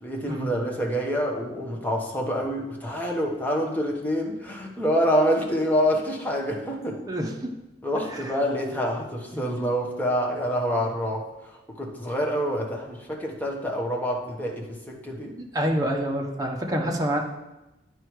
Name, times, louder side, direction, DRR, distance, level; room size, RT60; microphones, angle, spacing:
voice 1, 0.0-7.0 7.8-15.3, equal, 10° left, -1 dB, 1.2 m, -27 dB
voice 2, 7.1-7.5 7.9-8.3 9.3-9.4 15.5-17.2, equal, 20° right, 1 dB, 1.0 m, -27 dB
9.8 x 4.8 x 4.7 m, 1.0 s
head